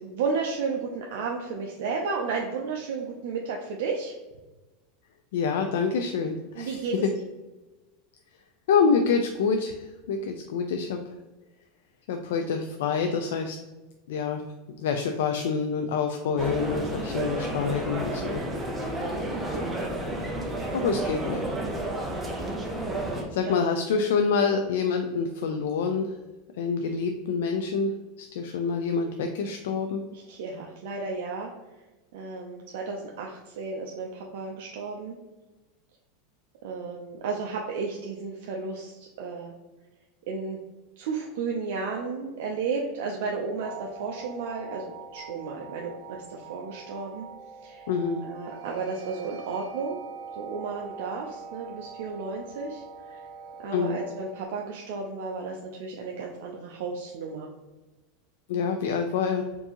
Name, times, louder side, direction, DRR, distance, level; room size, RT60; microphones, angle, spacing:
voice 1, 0.1-4.1 6.5-7.1 23.2-23.6 30.1-31.5 32.1-35.2 36.6-39.5 40.3-40.6 41.0-47.3 47.6-47.9 48.2-50.0 50.4-53.2 53.6-57.5, right 4 dB, 60° right, 0 dB, 0.5 m, -33 dB
voice 2, 5.3-7.1 8.7-11.0 12.1-13.6 14.1-14.4 14.8-18.4 18.9-19.0 20.7-21.5 23.3-26.1 26.6-27.9 28.2-30.0 47.9-48.3 53.7-54.0 58.5-59.5, left 5 dB, 75° left, 5 dB, 0.3 m, -26 dB
sound 1, 16.4-23.2, right 1 dB, 10° right, 0.5 m, -31 dB
sound 2, 43.6-54.5, right 5 dB, 35° right, 0.8 m, -43 dB
4.4 x 2.7 x 2.9 m, 1.1 s
supercardioid pair, 175°, 0 cm